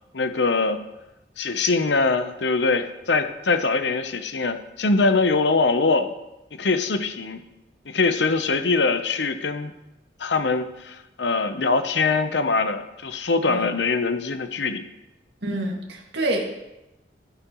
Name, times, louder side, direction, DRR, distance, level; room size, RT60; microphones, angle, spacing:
voice 1, 0.1-0.8 1.4-6.1 6.6-7.4 7.9-9.7 10.2-14.8, left 3 dB, 90° left, 9 dB, 0.9 m, -23 dB
voice 2, 15.4-16.4, right 1 dB, 75° right, 0 dB, 2.1 m, -27 dB
15.0 x 10.5 x 3.1 m, 0.95 s
head